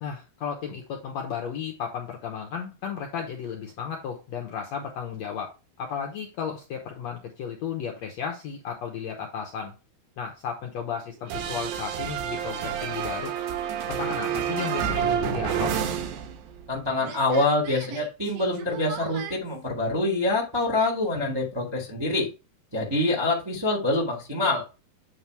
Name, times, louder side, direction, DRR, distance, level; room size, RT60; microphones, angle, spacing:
voice 1, 0.0-5.5 5.8-9.7 10.2-13.3 13.9-15.7, left 7 dB, 70° left, 2 dB, 1.7 m, -34 dB
sound 1, 11.3-16.8 17.0-19.4, right 9 dB, 90° right, 2.8 m, -30 dB
voice 2, 16.7-22.3 22.7-24.6, left 2 dB, 15° right, -1 dB, 0.8 m, -25 dB
8.8 x 3.5 x 4.6 m, 0.29 s
omnidirectional pair, 4.1 m